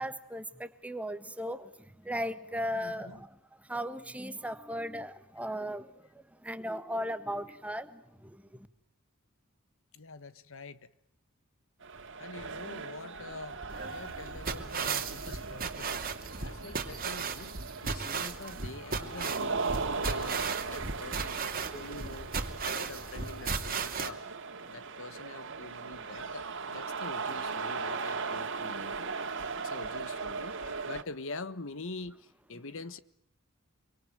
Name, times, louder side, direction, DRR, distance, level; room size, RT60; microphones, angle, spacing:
voice 1, 0.0-8.7 32.5-32.6, equal, 5° right, 1.6 m, -37 dB
voice 2, 2.8-3.2 9.9-10.9 12.2-13.6 13.9-16.1 16.4-17.5 17.8-24.3 24.7-29.1 29.6-33.0, left 3 dB, 65° left, 1.3 m, -45 dB
sound 1, 11.8-31.0, right 4 dB, 60° right, 2.4 m, -38 dB
sound 2, 13.7-24.1, right 5 dB, 45° right, 2.6 m, -36 dB
26.5 x 25.0 x 9.1 m
head